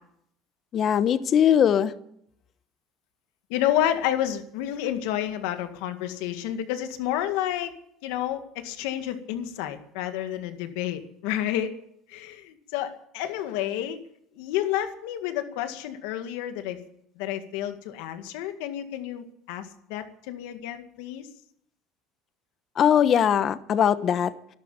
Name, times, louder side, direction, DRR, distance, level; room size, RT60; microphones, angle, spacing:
voice 1, 0.7-1.9 22.7-24.5, left 9 dB, 45° left, 13 dB, 1.1 m, -21 dB
voice 2, 3.5-7.7 8.0-11.7 12.1-14.0 14.4-16.8 17.2-21.3, left 11 dB, 85° left, 8 dB, 1.9 m, -30 dB
12.5 x 12.0 x 9.0 m, 0.71 s
supercardioid pair, 110°, 0 cm